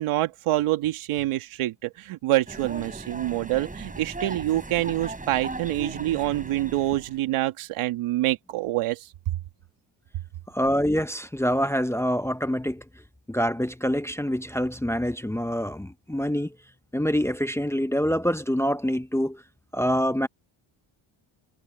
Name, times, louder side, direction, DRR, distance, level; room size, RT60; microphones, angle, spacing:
voice 1, 0.0-9.0, right 15 dB, 85° right, 2.2 m, -26 dB
sound 1, 2.5-7.2, right 2 dB, 15° right, 5.8 m, -38 dB
voice 2, 10.5-12.8 13.3-16.5 16.9-19.4 19.7-20.3, equal, 5° left, 0.8 m, -25 dB
cardioid pair, 90°, 50 cm